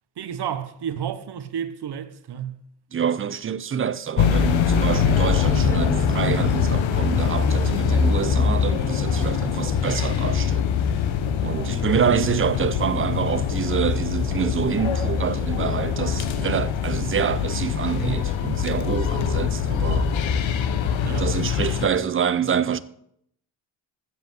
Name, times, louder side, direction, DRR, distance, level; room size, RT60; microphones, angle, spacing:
voice 1, 0.2-2.6 21.0-21.3, right 8 dB, 60° right, 0.9 m, -31 dB
voice 2, 2.9-10.7 11.4-20.1 21.0-22.8, right 7 dB, 30° right, 0.5 m, -26 dB
sound 1, 4.2-21.9, left 7 dB, 80° left, 1.0 m, -23 dB
7.7 x 7.6 x 7.4 m
cardioid pair, 120°, 45 cm